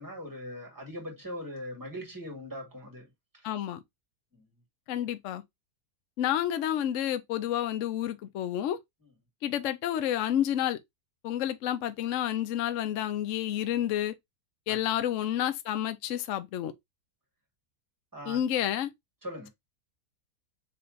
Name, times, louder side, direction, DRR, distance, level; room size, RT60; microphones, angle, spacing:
voice 1, 0.0-3.1 3.3-3.5 4.3-4.4 14.7-14.8 18.1-18.4 19.2-19.5, equal, 10° right, 2.0 m, -40 dB
voice 2, 3.4-3.8 4.9-5.4 6.2-8.8 9.4-10.8 11.2-14.1 14.7-16.7 18.3-18.9, left 11 dB, 65° left, 0.8 m, -30 dB
3.3 x 3.2 x 3.8 m
omnidirectional pair, 1.7 m